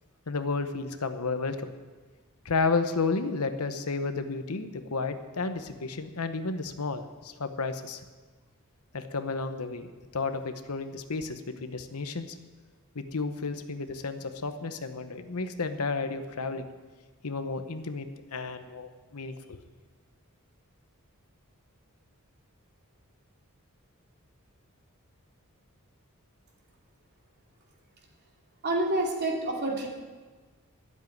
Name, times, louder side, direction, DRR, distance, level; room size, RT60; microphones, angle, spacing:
voice 1, 0.3-1.7 2.4-8.0 8.9-9.9 10.1-12.3 12.9-16.7 17.2-19.6, left 4 dB, 80° left, 9 dB, 1.0 m, -32 dB
voice 2, 28.6-29.9, right 2 dB, 50° right, -1 dB, 2.6 m, -28 dB
13.0 x 7.5 x 9.3 m, 1.4 s
head